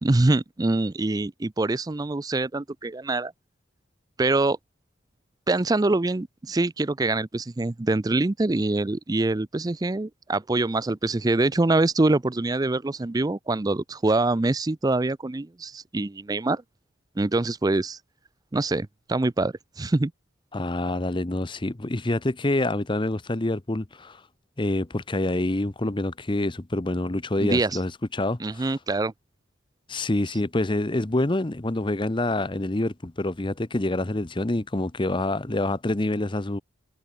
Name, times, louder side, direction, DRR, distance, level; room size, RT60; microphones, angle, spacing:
voice 1, 0.0-3.3 4.2-4.6 5.5-16.6 17.2-18.0 18.5-20.1 27.4-27.8 28.4-29.1, right 2 dB, 20° right, 0.4 m, -24 dB
voice 2, 20.5-24.2 24.6-28.7 29.9-36.6, left 1 dB, 25° left, 0.8 m, -26 dB
head